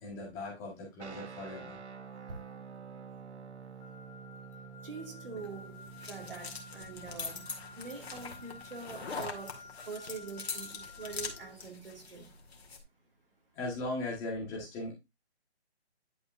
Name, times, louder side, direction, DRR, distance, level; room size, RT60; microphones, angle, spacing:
voice 1, 0.0-1.8 13.5-14.9, left 2 dB, 10° left, 1.5 m, -38 dB
sound 1, 1.0-9.9, right 6 dB, 80° right, 1.3 m, -50 dB
Wind instrument woodwind instrument, 3.8-11.6, left 5 dB, 40° left, 2.6 m, -52 dB
voice 2, 4.8-12.3, right 4 dB, 55° right, 2.3 m, -45 dB
sound 2, 5.4-12.8, left 4 dB, 65° left, 2.1 m, -43 dB
10.5 x 4.8 x 2.6 m
hypercardioid pair, 165°, 33 cm